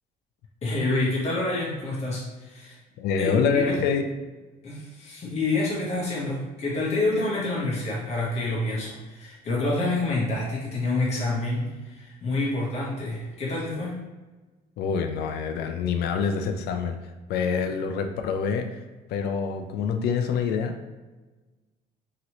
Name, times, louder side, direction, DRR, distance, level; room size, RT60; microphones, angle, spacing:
voice 1, 0.6-2.8 3.2-3.8 4.6-14.0, left 2 dB, 40° left, -5 dB, 0.9 m, -28 dB
voice 2, 3.0-4.1 14.8-18.8 19.1-20.9, left 6 dB, 75° left, 7 dB, 0.4 m, -26 dB
2.9 x 2.8 x 2.9 m, 1.2 s
cardioid pair, 110°, 17 cm